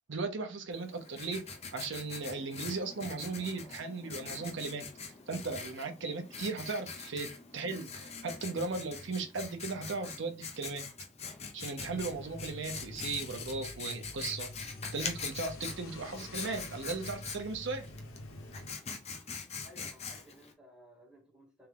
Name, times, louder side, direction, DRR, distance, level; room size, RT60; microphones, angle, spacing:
voice 1, 0.1-4.9 5.3-10.9 11.5-14.5 14.9-17.9, right 3 dB, 65° right, 0.7 m, -37 dB
Writing, 0.7-20.5, left 5 dB, 30° left, 0.7 m, -44 dB
sound 1, 11.8-18.7, left 1 dB, 85° left, 0.8 m, -47 dB
voice 2, 19.6-21.7, equal, 5° right, 2.4 m, -57 dB
3.5 x 3.4 x 3.4 m
head